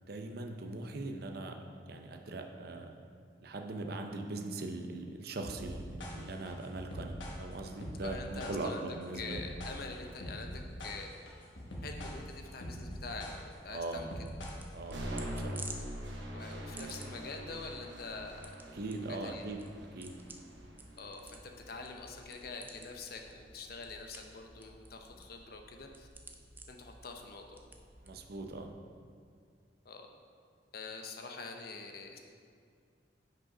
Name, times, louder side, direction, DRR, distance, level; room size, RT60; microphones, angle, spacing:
voice 1, 0.1-1.6 1.9-2.9 3.4-9.4 13.7-14.1 14.7-15.7 18.7-19.6 19.9-20.1 28.0-28.7, right 2 dB, 60° right, 4 dB, 0.6 m, -40 dB
sound 1, 5.4-15.0, equal, 90° left, 1.2 m, -43 dB
voice 2, 8.0-8.9 9.2-11.1 11.8-14.1 16.3-18.5 19.1-19.4 21.0-26.1 26.7-27.6 29.8-30.1 30.7-32.2, left 4 dB, 55° left, 3 dB, 0.7 m, -45 dB
sound 2, 13.5-28.7, right 2 dB, 10° right, 0.4 m, -53 dB
sound 3, 14.9-22.9, equal, 85° right, 1.0 m, -44 dB
6.1 x 5.3 x 4.9 m, 2.2 s
head